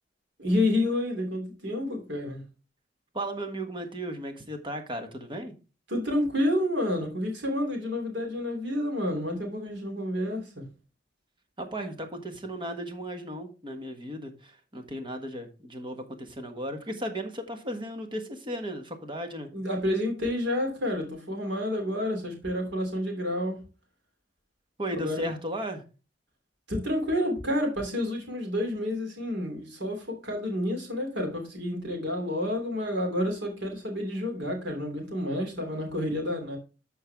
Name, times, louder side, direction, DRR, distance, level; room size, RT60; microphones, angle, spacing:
voice 1, 0.4-2.4 5.9-10.6 19.5-23.6 24.9-25.3 26.7-36.6, left 1 dB, 65° right, 3.0 m, -29 dB
voice 2, 3.1-5.5 11.6-19.5 24.8-25.8, right 1 dB, 25° right, 1.4 m, -35 dB
13.0 x 4.6 x 3.5 m
head